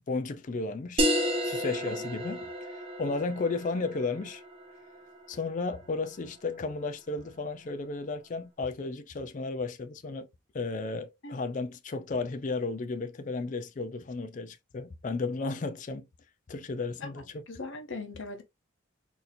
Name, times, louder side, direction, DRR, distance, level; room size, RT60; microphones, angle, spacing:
voice 1, 0.1-1.1 1.4-4.4 5.3-10.3 10.5-16.1 16.5-17.5, left 3 dB, 40° left, 0.4 m, -34 dB
sound 1, 1.0-6.1, equal, 30° right, 0.7 m, -32 dB
voice 2, 17.5-18.4, left 3 dB, 70° left, 0.8 m, -39 dB
4.1 x 2.7 x 2.5 m
head